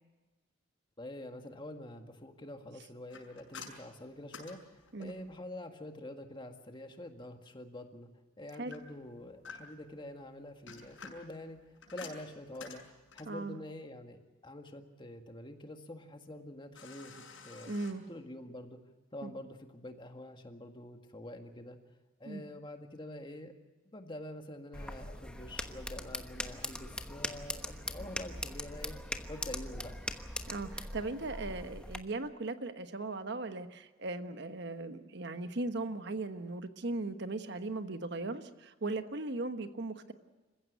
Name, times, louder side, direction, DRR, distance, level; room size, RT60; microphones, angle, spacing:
voice 1, 1.0-8.1 8.4-11.6 11.9-17.7 18.1-18.8 19.1-21.8 22.2-23.5 23.9-29.0 29.3-30.0, left 1 dB, 25° left, 5 dB, 1.8 m, -46 dB
sound 1, 3.1-5.4 8.7-9.9 10.5-13.4 16.7-17.9, left 5 dB, 70° left, 6.1 m, -50 dB
voice 2, 13.3-13.6 17.6-18.0 19.2-19.3 22.2-22.4 30.5-40.1, right 2 dB, 55° right, 9 dB, 1.2 m, -38 dB
sound 2, 24.7-32.0, left 1 dB, 5° left, 1.1 m, -41 dB
27.5 x 15.5 x 8.2 m, 1.2 s
head